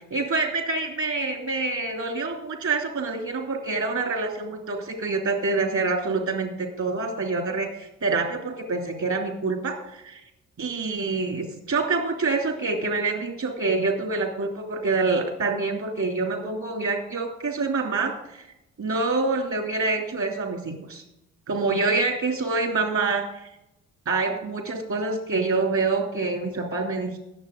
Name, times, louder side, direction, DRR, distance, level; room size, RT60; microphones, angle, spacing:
voice 1, 0.1-10.2 10.6-18.4 18.8-21.0 21.5-23.2 24.1-27.2, right 3 dB, 45° right, 3 dB, 2.9 m, -26 dB
19.5 x 7.3 x 3.8 m, 0.90 s
figure-of-eight pair, 40°, 39 cm